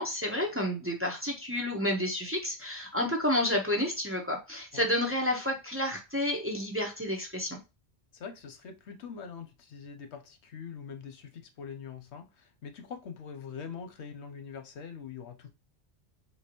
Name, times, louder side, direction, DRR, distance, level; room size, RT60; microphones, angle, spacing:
voice 1, 0.0-7.6, left 1 dB, 15° right, 0.6 m, -30 dB
voice 2, 8.1-15.5, left 6 dB, 85° left, 1.0 m, -43 dB
3.6 x 2.7 x 2.9 m
omnidirectional pair, 1.1 m